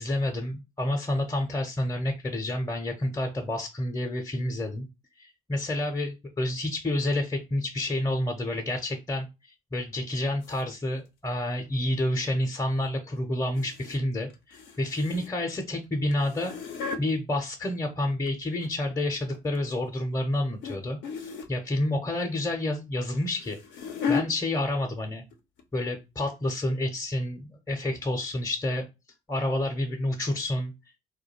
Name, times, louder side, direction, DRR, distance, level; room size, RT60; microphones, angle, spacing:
voice 1, 0.0-4.9 5.2-16.5 17.0-23.6 24.1-25.2 25.7-28.9 29.3-30.7, left 1 dB, 15° left, 3 dB, 0.6 m, -29 dB
sound 1, 10.4-10.6 13.6-14.0 14.3-15.5 16.1-17.0 18.0-18.9 19.3-19.6 20.6-20.8 21.0-21.6 23.0-24.3 25.1-25.3 25.6-25.7 26.2-26.3, left 6 dB, 65° left, 0.5 m, -34 dB
2.3 x 2.2 x 2.9 m, 0.25 s
hypercardioid pair, 50°, 21 cm